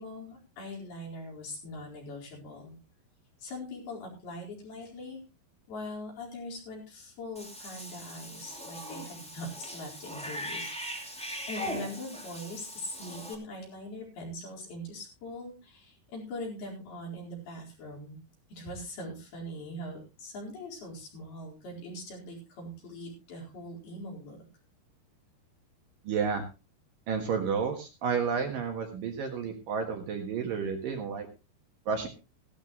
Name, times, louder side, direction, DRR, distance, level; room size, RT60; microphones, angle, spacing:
voice 1, 0.0-2.8 3.4-5.2 5.7-18.2 18.5-24.4, left 1 dB, 60° left, -2 dB, 6.3 m, -42 dB
Cat / Bathtub (filling or washing), 7.3-13.3, equal, 5° left, 1.0 m, -40 dB
voice 2, 26.0-26.4 27.1-31.3 31.9-32.1, right 6 dB, 60° right, 3 dB, 2.8 m, -31 dB
16.0 x 12.5 x 3.1 m, 0.28 s
omnidirectional pair, 5.1 m